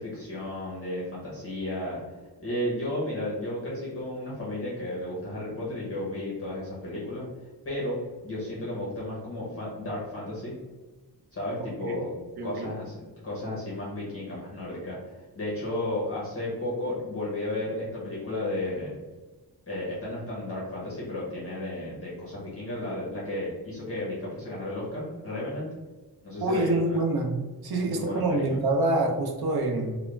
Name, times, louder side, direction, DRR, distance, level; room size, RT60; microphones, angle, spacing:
voice 1, 0.0-2.0 2.4-7.2 7.6-8.0 8.2-10.5 11.3-12.1 12.4-19.0 19.7-25.7 26.2-27.0 27.7-28.6, left 1 dB, 35° left, -7 dB, 0.7 m, -33 dB
voice 2, 12.4-12.7 26.4-30.0, right 2 dB, 70° right, 2 dB, 0.6 m, -26 dB
2.3 x 2.1 x 3.1 m, 1.3 s
wide cardioid pair, 140°, 39 cm